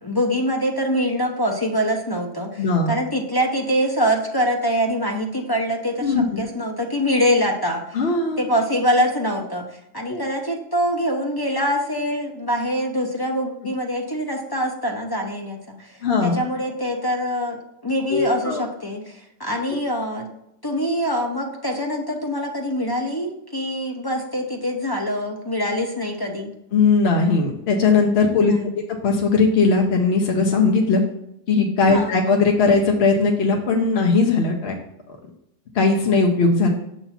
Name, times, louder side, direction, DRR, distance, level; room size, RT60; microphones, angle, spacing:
voice 1, 0.0-8.0 8.4-17.6 17.8-20.3 20.6-26.5 28.4-28.8 31.9-32.2, equal, 35° left, 1 dB, 0.3 m, -24 dB
voice 2, 2.6-2.9 6.0-6.4 7.9-8.4 10.1-10.2 16.0-16.4 18.1-18.7 26.7-31.0 31.5-34.7 35.7-36.7, left 4 dB, 60° left, 1 dB, 0.9 m, -19 dB
6.9 x 3.0 x 5.6 m, 0.80 s
omnidirectional pair, 1.3 m